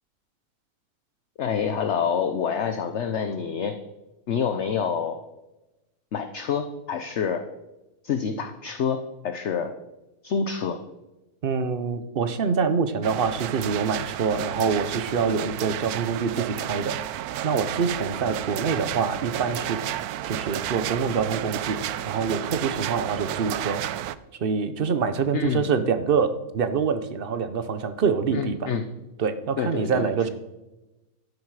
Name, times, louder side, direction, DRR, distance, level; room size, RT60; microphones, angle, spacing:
voice 1, 1.4-3.7 4.3-5.2 6.1-7.4 8.0-9.0 9.2-9.7 10.2-10.8 25.3-25.7 28.3-28.9 29.6-30.3, left 6 dB, 55° left, 8 dB, 1.0 m, -27 dB
voice 2, 11.4-17.0 17.4-19.8 20.3-21.8 22.1-23.8 24.4-28.7 29.2-30.3, right 5 dB, 45° right, 11 dB, 0.9 m, -25 dB
sound 1, 13.0-24.2, right 12 dB, 90° right, 1.1 m, -32 dB
13.0 x 9.7 x 4.8 m, 1.0 s
omnidirectional pair, 1.5 m